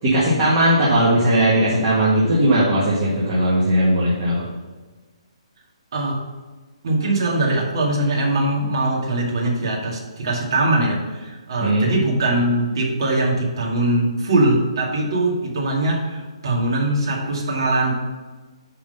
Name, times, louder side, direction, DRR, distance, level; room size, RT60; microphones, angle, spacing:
voice 1, 0.0-4.4 11.6-11.9, right 1 dB, 25° right, -8 dB, 1.6 m, -18 dB
voice 2, 5.9-6.2 6.8-18.0, right 2 dB, 45° right, -2 dB, 2.2 m, -21 dB
9.7 x 3.8 x 5.6 m, 1.3 s
hypercardioid pair, 175°, 3 cm